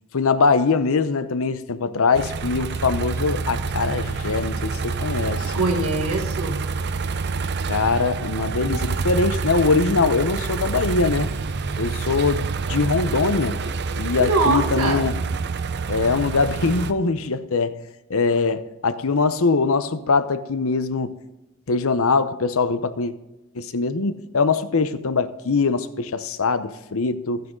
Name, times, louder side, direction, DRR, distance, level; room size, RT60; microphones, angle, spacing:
voice 1, 0.1-5.5 7.7-11.3 11.8-13.6 14.0-15.1 15.9-17.7 18.1-21.1 21.7-23.1 23.5-27.4, left 4 dB, 65° left, 0.8 m, -22 dB
sound 1, 2.1-16.9, right 4 dB, 50° right, 0.6 m, -27 dB
voice 2, 5.5-6.6 14.2-15.1, right 3 dB, 90° right, 1.6 m, -23 dB
13.0 x 9.2 x 3.8 m
head